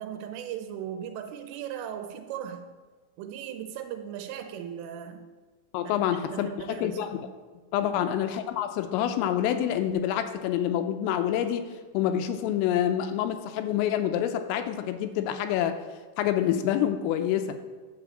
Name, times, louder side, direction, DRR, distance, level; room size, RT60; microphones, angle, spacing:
voice 1, 0.0-2.7 3.2-5.3 5.8-7.0 7.8-8.1, right 9 dB, 80° right, 7 dB, 3.4 m, -38 dB
voice 2, 5.7-7.2 7.7-11.7 11.9-15.8 16.2-17.6, left 10 dB, 90° left, 8 dB, 3.4 m, -27 dB
9.3 x 7.8 x 7.5 m, 1.4 s
omnidirectional pair, 5.8 m